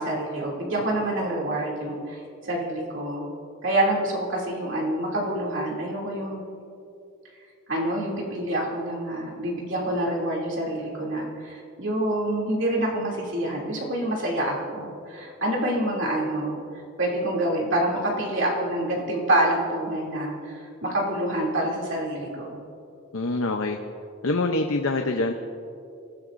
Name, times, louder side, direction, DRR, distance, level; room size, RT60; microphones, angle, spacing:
voice 1, 0.0-3.2 3.6-6.4 7.7-16.6 17.0-22.6, right 1 dB, 60° right, -3 dB, 2.9 m, -27 dB
voice 2, 23.1-23.8 24.2-25.3, left 2 dB, 80° left, 4 dB, 0.8 m, -25 dB
26.5 x 15.5 x 2.7 m, 2.6 s
head